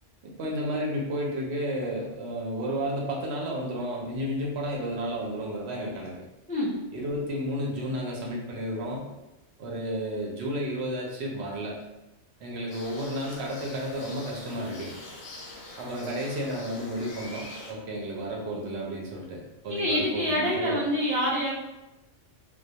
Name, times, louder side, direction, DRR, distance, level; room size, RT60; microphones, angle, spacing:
voice 1, 0.2-6.2 6.9-9.1 9.6-11.8 12.4-14.9 15.8-20.8, equal, 65° right, -3 dB, 0.8 m, -32 dB
sound 1, 12.7-17.7, left 2 dB, 85° left, 1.0 m, -44 dB
voice 2, 19.7-21.5, left 1 dB, 10° left, -9 dB, 0.3 m, -26 dB
2.2 x 2.1 x 2.7 m, 0.97 s
omnidirectional pair, 1.3 m